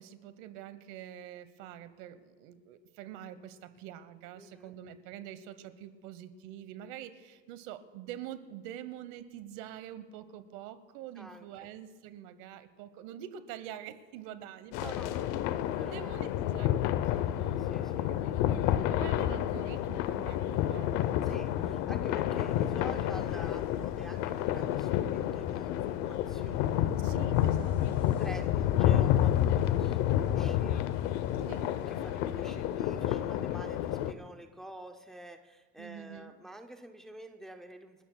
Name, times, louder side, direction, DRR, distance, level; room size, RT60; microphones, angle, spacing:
voice 1, 0.0-14.9 15.8-17.6 18.1-18.4 18.9-21.0 21.5-22.0 27.0-28.1 28.4-28.6 31.4-31.8 35.8-36.3, right 11 dB, 85° right, 12 dB, 1.0 m, -46 dB
voice 2, 4.3-4.7 11.2-11.7 14.7-15.3 15.7-16.1 17.6-18.1 21.2-26.9 28.2-38.0, right 1 dB, ahead, 5 dB, 0.5 m, -48 dB
sound 1, 14.7-34.1, left 11 dB, 75° left, 0.7 m, -29 dB
sound 2, 25.4-33.0, right 5 dB, 50° right, 5.0 m, -58 dB
29.0 x 12.5 x 2.2 m, 1.4 s
cardioid pair, 170°, 30 cm